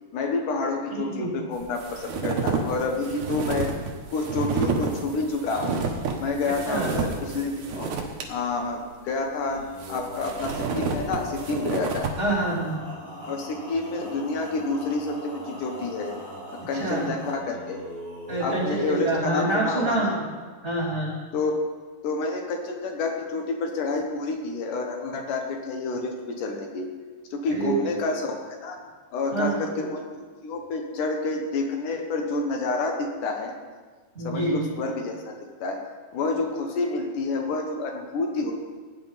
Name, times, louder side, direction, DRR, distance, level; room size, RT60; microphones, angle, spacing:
voice 1, 0.1-3.7 4.1-5.7 6.2-7.9 8.3-12.1 13.3-16.1 16.5-17.8 18.4-20.1 21.3-21.6 22.0-26.9 27.3-28.8 29.1-30.1 30.4-33.5 34.2-35.3 35.6-35.8 36.1-38.5, left 3 dB, 75° left, 3 dB, 2.7 m, -29 dB
voice 2, 0.9-1.3 6.7-6.9 12.2-12.8 16.7-17.1 18.3-20.2 20.6-21.1 27.5-27.8 29.3-29.7 34.1-34.6, right 2 dB, 15° right, -8 dB, 3.3 m, -26 dB
sound 1, 1.6-8.2 8.7-8.8 9.6-12.2, right 5 dB, 65° right, 2.5 m, -30 dB
Male singing, 9.4-19.2, equal, 40° left, 5.8 m, -40 dB
17.0 x 9.7 x 4.1 m, 1.4 s
omnidirectional pair, 3.7 m